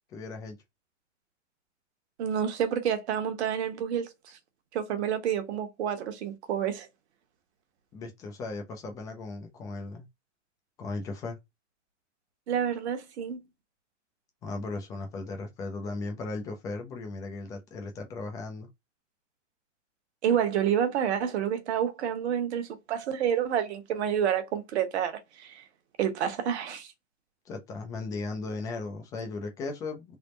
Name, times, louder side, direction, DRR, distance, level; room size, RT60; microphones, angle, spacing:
voice 1, 0.1-0.6 7.9-10.1 10.8-11.4 14.4-18.7 27.5-30.2, left 3 dB, 10° left, 0.3 m, -37 dB
voice 2, 2.2-4.4 4.7-6.9 12.5-13.4 20.2-25.7 26.0-26.9, right 9 dB, 60° right, 1.1 m, -29 dB
3.4 x 2.0 x 3.8 m
hypercardioid pair, 135°, 37 cm